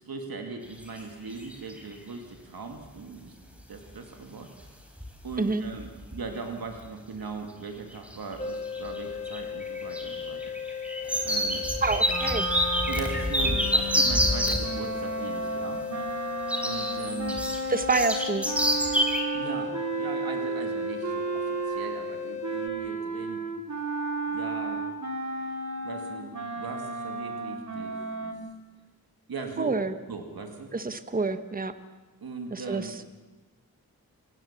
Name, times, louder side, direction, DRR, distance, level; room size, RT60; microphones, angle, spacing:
voice 1, 0.0-3.3 3.7-4.9 5.2-10.4 11.2-11.6 12.9-15.8 16.6-17.4 19.3-23.4 24.3-24.8 25.8-28.4 29.3-30.7 32.2-32.9, right 4 dB, 85° right, 4 dB, 2.4 m, -39 dB
sound 1, 0.8-1.0 1.3-1.9 3.9-4.0 4.6-4.7 5.0-5.3 5.6-6.2 6.8-6.9 7.9-8.4 8.7-14.6 16.5-19.2, equal, 5° right, 3.9 m, -27 dB
sound 2, 8.4-22.7, left 7 dB, 20° left, 1.4 m, -36 dB
voice 2, 11.8-12.5 17.7-18.5 29.6-29.9 30.7-31.7 32.5-32.9, right 3 dB, 25° right, 10 dB, 1.1 m, -27 dB
sound 3, 12.0-22.1 22.4-28.3, right 3 dB, 50° right, 3.0 m, -33 dB
28.5 x 17.0 x 7.3 m, 1.2 s
wide cardioid pair, 110°, 36 cm